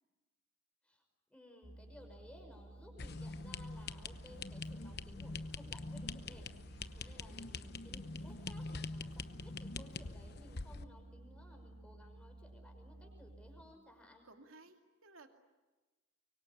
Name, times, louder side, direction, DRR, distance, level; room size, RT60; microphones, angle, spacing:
voice 1, 1.3-14.3, left 1 dB, 5° left, 3 dB, 5.8 m, -59 dB
sound 1, 1.6-13.6, right 1 dB, 35° right, 2.6 m, -55 dB
sound 2, 3.0-10.8, left 3 dB, 50° left, 0.9 m, -44 dB
voice 2, 6.8-7.3 14.2-15.3, right 3 dB, 75° right, 5 dB, 2.5 m, -59 dB
25.0 x 24.0 x 9.9 m, 1.2 s
head